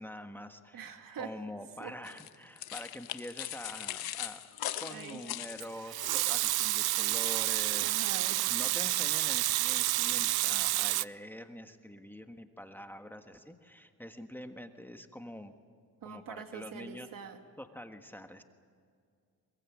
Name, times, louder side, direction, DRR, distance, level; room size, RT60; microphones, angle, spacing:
voice 1, 0.0-0.9 1.2-8.0 8.3-15.6 16.0-17.1 17.6-18.4, equal, 5° left, 6 dB, 1.5 m, -46 dB
voice 2, 0.7-1.3 1.8-1.9 4.9-5.2 7.4-7.5 7.8-8.4 16.0-17.4, right 7 dB, 65° right, 6 dB, 2.3 m, -44 dB
sound 1, 2.0-6.1, left 12 dB, 75° left, 1.2 m, -40 dB
Water tap faucet / Sink (filling or washing) / Liquid, 5.6-11.1, right 18 dB, 85° right, 0.5 m, -29 dB
23.0 x 22.0 x 8.6 m, 2.2 s
cardioid pair, 95°, 37 cm